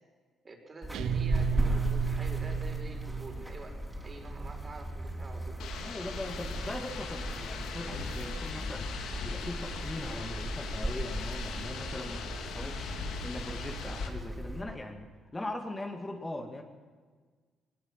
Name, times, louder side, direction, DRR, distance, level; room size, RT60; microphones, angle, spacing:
voice 1, 0.4-3.7 4.0-5.5, right 3 dB, 35° right, 3 dB, 4.9 m, -47 dB
sound 1, 0.8-14.6, right 1 dB, 10° right, 4.3 m, -36 dB
Guitar, 0.9-3.5, right 11 dB, 80° right, 0.9 m, -34 dB
sound 2, 5.6-14.1, left 6 dB, 85° left, 2.6 m, -40 dB
voice 2, 5.8-8.9 9.2-13.0 13.2-16.6, left 1 dB, 20° left, 3 dB, 2.2 m, -40 dB
20.0 x 20.0 x 7.6 m, 1.5 s
cardioid pair, 90°, 0 cm